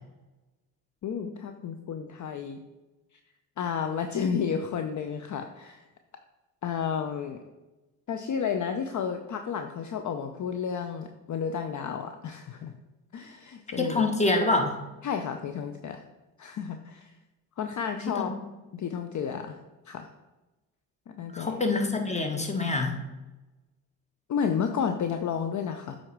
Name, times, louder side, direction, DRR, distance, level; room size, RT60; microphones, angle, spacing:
voice 1, 1.0-2.6 3.1-3.2 3.6-5.8 6.6-7.4 8.1-12.7 13.1-14.1 15.0-16.0 16.4-17.1 17.6-18.3 18.7-19.6 19.9-20.1 21.1-21.6 24.3-26.0, left 7 dB, 45° left, 7 dB, 0.7 m, -31 dB
voice 2, 13.8-14.8 18.0-18.3 21.3-23.0, left 3 dB, 15° left, 4 dB, 1.6 m, -26 dB
7.7 x 4.4 x 4.6 m, 1.1 s
supercardioid pair, 60°, 42 cm